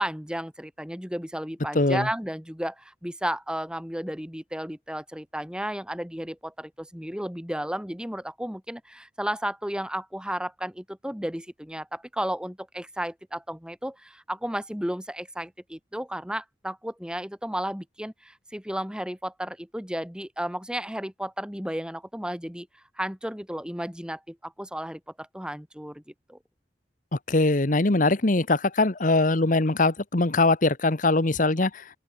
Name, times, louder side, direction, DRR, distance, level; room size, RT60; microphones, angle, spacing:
voice 1, 0.0-22.7 23.0-26.0 26.3-26.4, right 1 dB, 5° right, 4.0 m, -33 dB
voice 2, 1.7-2.1 27.3-31.7, left 2 dB, 45° left, 1.2 m, -22 dB
open air
head